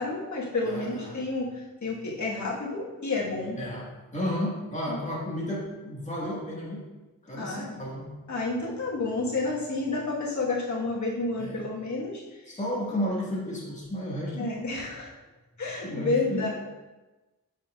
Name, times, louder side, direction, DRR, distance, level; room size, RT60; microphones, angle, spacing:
voice 1, 0.0-3.6 4.9-5.0 7.3-7.8 8.3-12.6 14.3-15.1 15.6-16.5, left 3 dB, 55° left, -5 dB, 1.5 m, -30 dB
voice 2, 0.7-1.2 3.5-6.8 7.2-8.1 11.4-11.6 12.5-14.5 15.8-16.5, equal, 20° left, -5 dB, 1.6 m, -32 dB
7.3 x 5.6 x 2.4 m, 1.1 s
wide cardioid pair, 150°, 35 cm